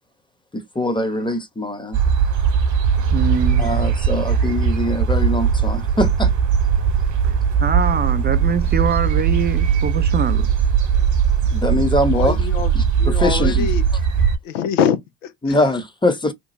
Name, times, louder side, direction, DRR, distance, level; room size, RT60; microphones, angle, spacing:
voice 1, 0.5-2.0 3.6-6.3 11.5-12.4 12.7-12.8 13.2-13.7 15.4-16.3, left 1 dB, 10° left, 0.9 m, -22 dB
sound 1, 1.9-14.4, right 7 dB, 50° right, 1.1 m, -19 dB
voice 2, 2.9-4.0 7.2-7.3 7.6-10.5, right 7 dB, 30° right, 0.4 m, -24 dB
voice 3, 12.1-12.7 13.0-13.8 14.4-15.7, left 8 dB, 85° left, 0.7 m, -24 dB
3.0 x 2.3 x 4.0 m
hypercardioid pair, 55°, 37 cm